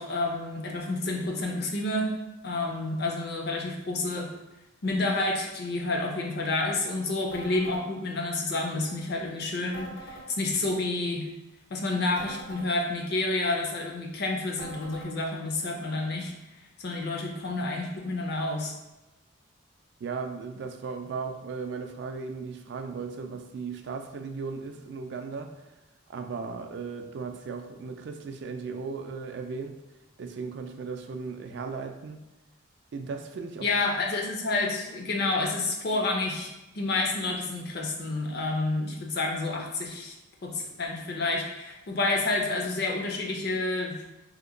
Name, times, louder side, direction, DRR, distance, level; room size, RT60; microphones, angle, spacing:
voice 1, 0.0-2.1 2.4-4.3 4.8-11.3 11.7-16.3 16.8-18.7 33.6-36.5 36.7-40.1 40.4-44.0, left 2 dB, 55° left, 1 dB, 0.5 m, -29 dB
sound 1, 7.3-7.8 9.7-10.3 12.1-12.7 14.6-15.1, right 2 dB, 85° left, 1.1 m, -42 dB
voice 2, 20.0-25.6 26.1-29.8 30.2-32.2 32.9-33.7, right 4 dB, 60° right, 5 dB, 0.3 m, -36 dB
2.8 x 2.1 x 3.7 m, 0.99 s
head